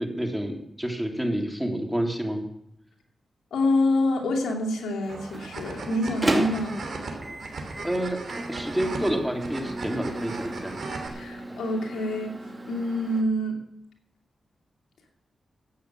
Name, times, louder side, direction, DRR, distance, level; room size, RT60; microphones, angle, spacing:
voice 1, 0.0-2.4 7.8-8.2 8.5-10.8, right 1 dB, 5° right, 2 dB, 3.3 m, -29 dB
voice 2, 3.5-6.8 11.1-13.6, left 1 dB, 80° left, 0 dB, 2.6 m, -26 dB
Microwave oven, 5.0-13.2, right 1 dB, 30° right, 2.7 m, -34 dB
sound 1, 5.1-11.1, right 3 dB, 65° right, 3.1 m, -37 dB
13.0 x 9.2 x 6.2 m, 0.76 s
supercardioid pair, 45°, 0 cm